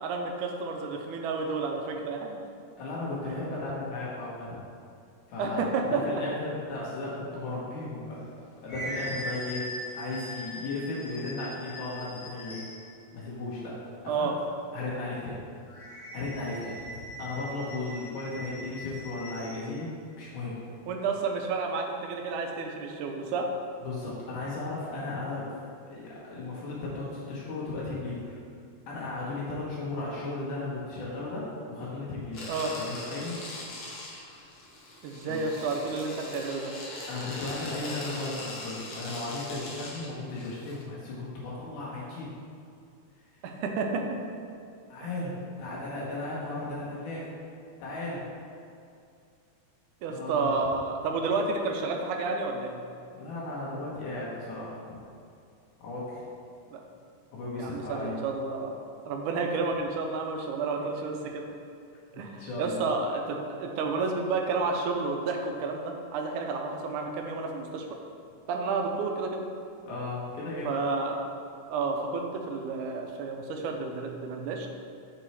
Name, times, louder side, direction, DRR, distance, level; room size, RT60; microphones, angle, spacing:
voice 1, 0.0-2.4 5.4-6.2 14.1-14.3 20.9-23.5 32.5-32.7 35.0-36.7 43.4-44.1 45.0-45.1 50.0-52.8 56.7-56.8 57.6-58.8 59.1-61.5 62.1-67.9 68.5-69.5 70.6-71.2 71.7-74.7, right 4 dB, 85° right, 3 dB, 2.1 m, -31 dB
voice 2, 2.8-4.6 5.3-5.7 6.0-8.2 8.6-9.7 9.9-12.6 13.1-14.3 14.7-15.4 16.1-16.8 17.2-20.6 23.8-25.5 25.9-28.4 28.9-33.4 35.3-35.4 37.1-42.3 44.9-47.3 47.8-48.2 50.1-50.7 53.1-55.0 55.8-56.3 57.3-58.1 62.1-62.9 69.9-70.7, left 2 dB, 80° left, -7 dB, 2.7 m, -35 dB
sound 1, 8.2-12.9 15.7-19.7, equal, 35° left, 1.4 m, -41 dB
sound 2, 32.3-40.8, left 2 dB, 60° left, 1.7 m, -41 dB
6.8 x 4.2 x 4.6 m, 2.5 s
omnidirectional pair, 3.6 m